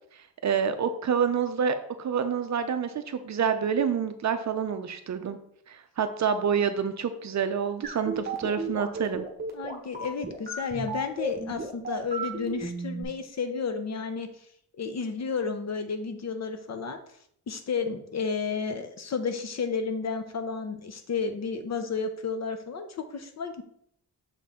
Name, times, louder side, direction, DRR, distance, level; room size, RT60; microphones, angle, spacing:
voice 1, 0.4-5.4 5.7-9.3, right 7 dB, 50° right, 8 dB, 0.5 m, -27 dB
sound 1, 7.8-13.0, right 3 dB, 25° right, 1.0 m, -34 dB
voice 2, 9.5-14.3 14.8-17.0 17.5-23.6, left 5 dB, 45° left, 7 dB, 0.7 m, -32 dB
6.6 x 4.2 x 3.6 m, 0.67 s
wide cardioid pair, 175°, 37 cm